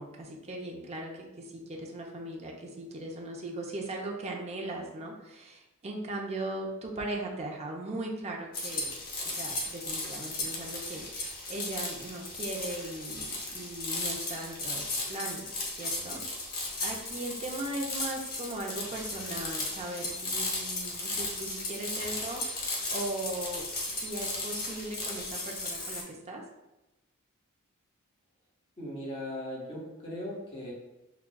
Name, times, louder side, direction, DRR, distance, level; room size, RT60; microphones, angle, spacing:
voice 1, 0.0-8.9 9.2-23.7 24.0-26.4, right 2 dB, 30° right, 0 dB, 0.5 m, -39 dB
sound 1, 8.5-26.0, left 2 dB, 45° left, 0.7 m, -35 dB
voice 2, 28.8-30.7, left 1 dB, 25° left, -5 dB, 1.1 m, -38 dB
5.8 x 2.2 x 2.2 m, 0.98 s
head